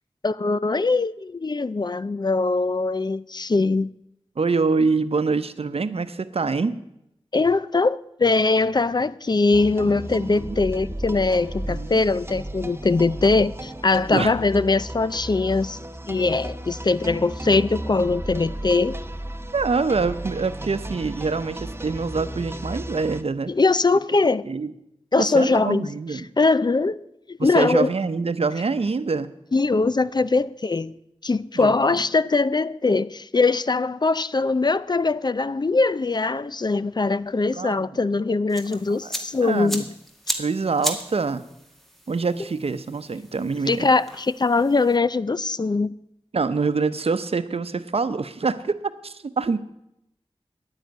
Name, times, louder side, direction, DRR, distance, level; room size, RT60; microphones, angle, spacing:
voice 1, 0.2-3.9 7.3-15.8 16.0-19.0 23.5-24.4 25.1-27.9 29.5-30.9 31.2-39.9 43.7-45.9, left 3 dB, 45° left, 0.5 m, -22 dB
voice 2, 4.4-6.7 10.5-10.6 11.7-12.0 14.1-14.3 19.5-23.5 24.4-24.7 25.2-26.3 27.4-29.3 31.5-31.9 37.5-37.7 38.7-39.1 39.4-39.8 40.4-41.4 42.1-43.9 46.3-48.8 49.0-49.6, right 4 dB, 70° right, 0.8 m, -25 dB
sound 1, 9.5-23.2, right 1 dB, 25° right, 0.9 m, -34 dB
sound 2, 38.5-45.0, equal, ahead, 2.1 m, -35 dB
10.0 x 9.9 x 9.3 m
wide cardioid pair, 55°, 10 cm